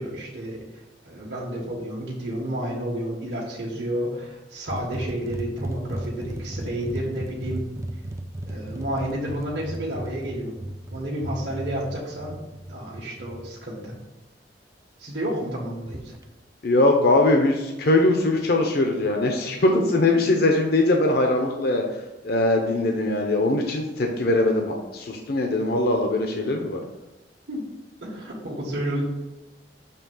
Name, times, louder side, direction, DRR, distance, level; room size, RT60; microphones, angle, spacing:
voice 1, 0.0-7.6 8.5-10.5 10.9-12.3 12.7-13.9 15.0-16.1 19.7-19.8 27.5-27.6 28.0-29.0, right 1 dB, 70° right, -5 dB, 1.5 m, -31 dB
sound 1, 4.7-13.5 15.9-16.2, right 1 dB, 15° right, 0.4 m, -35 dB
voice 2, 16.6-21.8 22.2-26.8, left 2 dB, 60° left, 2 dB, 0.7 m, -21 dB
6.9 x 3.3 x 5.4 m, 1.1 s
head